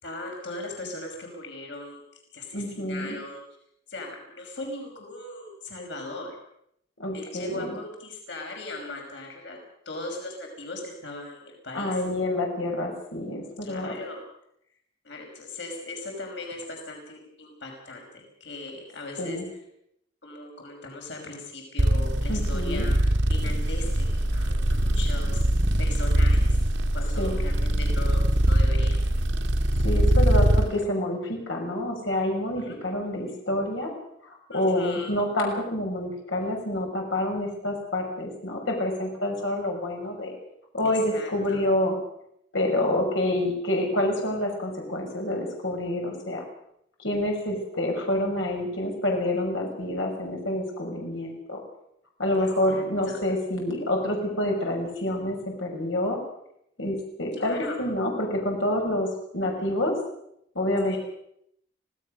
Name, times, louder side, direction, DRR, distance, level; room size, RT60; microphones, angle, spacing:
voice 1, 0.0-2.0 2.3-3.4 3.9-6.4 7.1-9.6 9.9-12.0 13.6-14.2 15.0-19.4 20.2-25.4 25.8-26.5 26.9-29.0 32.6-32.8 34.5-35.1 40.8-41.6 52.3-53.2 57.4-57.8 59.6-59.7 60.8-61.0, left 2 dB, 70° left, 1 dB, 5.7 m, -38 dB
voice 2, 2.5-3.2 7.0-7.8 11.7-13.9 19.2-19.5 22.3-22.9 27.2-27.4 29.8-33.9 34.2-40.3 40.7-42.0 42.5-46.4 47.0-51.6 52.2-56.2 56.8-59.1 59.3-59.9 60.5-61.0, left 1 dB, 85° left, 0 dB, 5.8 m, -27 dB
sound 1, 21.8-30.7, right 1 dB, 75° right, 1.7 m, -22 dB
25.0 x 17.5 x 6.5 m, 0.75 s
head